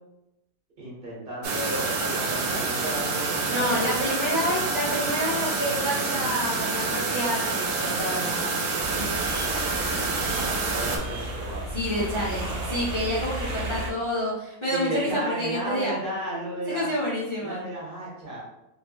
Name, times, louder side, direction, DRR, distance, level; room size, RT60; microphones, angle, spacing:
voice 1, 0.8-4.0 10.2-11.7 14.7-16.9 17.4-18.4, right 1 dB, 35° right, -5 dB, 1.4 m, -34 dB
sound 1, 1.4-11.0, right 3 dB, 80° right, 1.1 m, -27 dB
voice 2, 3.5-9.1 11.7-15.9 16.7-17.6, equal, 25° left, -8 dB, 0.7 m, -29 dB
sound 2, 8.7-13.9, right 1 dB, 60° right, 0.9 m, -33 dB
3.2 x 2.7 x 3.0 m, 0.89 s
omnidirectional pair, 1.6 m